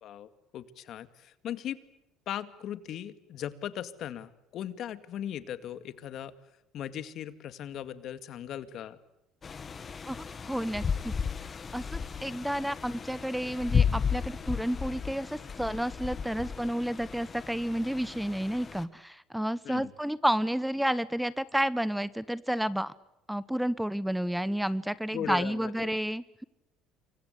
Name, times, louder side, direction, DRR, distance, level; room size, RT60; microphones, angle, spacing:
voice 1, 0.0-1.8 2.3-6.3 6.7-9.0 19.6-19.9 25.1-25.9, left 10 dB, 60° left, 12 dB, 2.1 m, -38 dB
sound 1, 9.4-18.8, left 6 dB, 35° left, 1.7 m, -34 dB
voice 2, 10.1-11.1 11.4-22.9 23.3-26.4, equal, 5° right, 17 dB, 1.0 m, -31 dB
28.5 x 24.0 x 8.3 m, 0.88 s
supercardioid pair, 85°, 0 cm